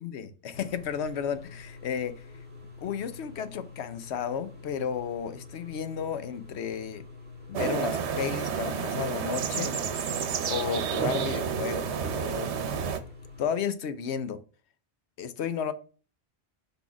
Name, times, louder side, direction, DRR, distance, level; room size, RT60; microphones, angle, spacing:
voice 1, 0.0-2.2 2.8-7.0 7.5-9.7 10.5-12.5 13.4-14.4 15.2-15.7, left 7 dB, 80° left, 0.9 m, -33 dB
sound 1, 0.5-13.5, left 4 dB, 10° right, 1.7 m, -47 dB
sound 2, 7.5-13.0, right 7 dB, 80° right, 1.0 m, -30 dB
6.1 x 3.5 x 5.7 m
omnidirectional pair, 1.1 m